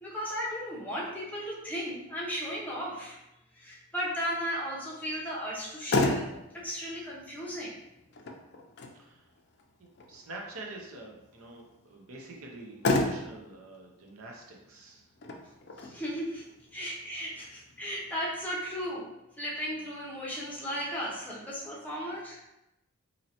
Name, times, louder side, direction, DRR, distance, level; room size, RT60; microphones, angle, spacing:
voice 1, 0.0-3.2 3.5-6.3 6.5-7.8 15.4-16.4 16.7-19.1 19.4-22.4, equal, 5° left, -5 dB, 0.7 m, -35 dB
Motor vehicle (road), 5.5-18.5, left 2 dB, 50° left, 0.4 m, -35 dB
voice 2, 9.8-15.1, right 2 dB, 80° right, -1 dB, 0.7 m, -46 dB
4.1 x 2.7 x 2.8 m, 0.91 s
head